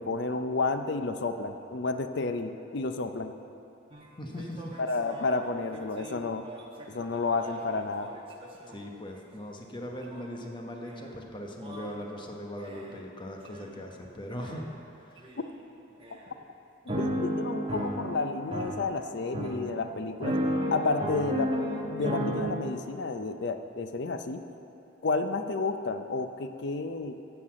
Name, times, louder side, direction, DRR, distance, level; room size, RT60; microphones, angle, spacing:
voice 1, 0.0-3.3 4.8-6.5 6.9-8.1 17.0-20.4 20.7-21.5 21.9-24.4 25.0-27.2, left 3 dB, 60° left, 8 dB, 0.5 m, -31 dB
sound 1, 3.9-4.0 4.4-8.7 10.1-10.2 10.9-11.1 11.6-12.0 12.6-13.0 13.5-13.9 14.4-14.6 15.2-15.4 16.0-16.2 16.9-22.4, equal, 30° right, 1.1 m, -34 dB
voice 2, 4.2-4.7 8.7-14.7 15.1-15.3, equal, 25° left, 1 dB, 1.0 m, -40 dB
9.8 x 6.6 x 7.5 m, 2.8 s
head